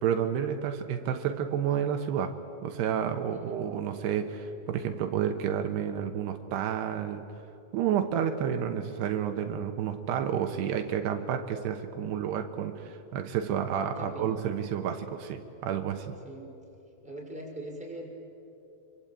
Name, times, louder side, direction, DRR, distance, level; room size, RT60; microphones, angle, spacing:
voice 1, 0.0-2.4 2.6-7.2 7.7-16.2, right 8 dB, 80° right, 6 dB, 3.2 m, -30 dB
voice 2, 3.3-3.7 8.1-8.4 13.9-14.3 16.2-16.5 17.0-18.1, right 1 dB, ahead, -2 dB, 5.1 m, -42 dB
26.5 x 24.5 x 8.7 m, 2.8 s
omnidirectional pair, 4.8 m